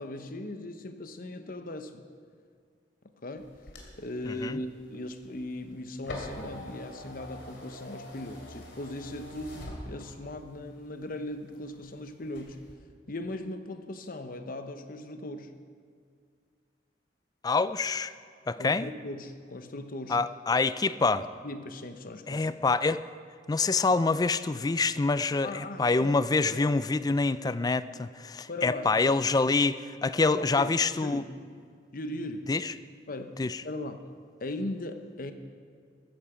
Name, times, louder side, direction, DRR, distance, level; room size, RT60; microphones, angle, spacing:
voice 1, 0.0-2.0 3.2-3.6 4.0-12.6 13.1-15.5 18.6-20.2 21.2-22.5 25.4-26.2 26.5-26.8 28.5-29.3 30.2-30.8 31.0-31.3 31.9-32.5 33.1-34.1 34.4-35.3, left 1 dB, 50° left, 8 dB, 0.9 m, -38 dB
sound 1, 3.4-10.4 10.9-11.9 12.2-12.7, left 1 dB, 75° left, 2.9 m, -44 dB
voice 2, 4.3-4.6 17.4-18.1 18.5-18.9 20.1-21.3 22.3-23.0 23.5-31.2 32.5-32.7 33.4-33.6, left 3 dB, 20° left, 14 dB, 0.3 m, -26 dB
14.5 x 14.5 x 5.0 m, 2.1 s
head